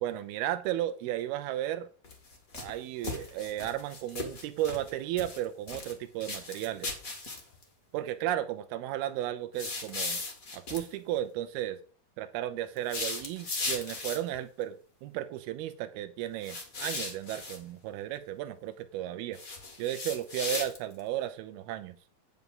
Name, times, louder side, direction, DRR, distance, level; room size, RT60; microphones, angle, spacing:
voice 1, 0.0-1.9 2.5-6.9 7.9-10.2 10.5-11.8 12.2-19.4 19.8-22.0, right 13 dB, 85° right, 9 dB, 2.7 m, -34 dB
sound 1, 2.0-2.7 3.0-4.9 5.2-5.9 6.2-7.6 9.6-10.9 12.8-14.4 16.4-17.6 19.3-21.0, left 3 dB, 30° left, 1.6 m, -37 dB
9.4 x 5.9 x 5.4 m, 0.40 s
omnidirectional pair, 4.3 m